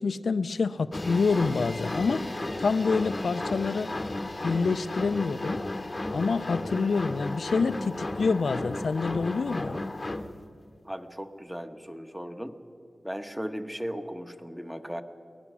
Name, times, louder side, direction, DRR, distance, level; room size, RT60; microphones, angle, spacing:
voice 1, 0.0-2.2 2.6-3.9 4.4-5.6 6.1-9.8, left 4 dB, 80° left, 14 dB, 0.6 m, -27 dB
sound 1, 0.9-10.4, left 2 dB, 30° left, 1.0 m, -34 dB
voice 2, 10.8-12.6 13.0-15.0, equal, 5° right, 7 dB, 1.2 m, -37 dB
22.5 x 19.0 x 6.2 m, 2.5 s
wide cardioid pair, 70°, 0 cm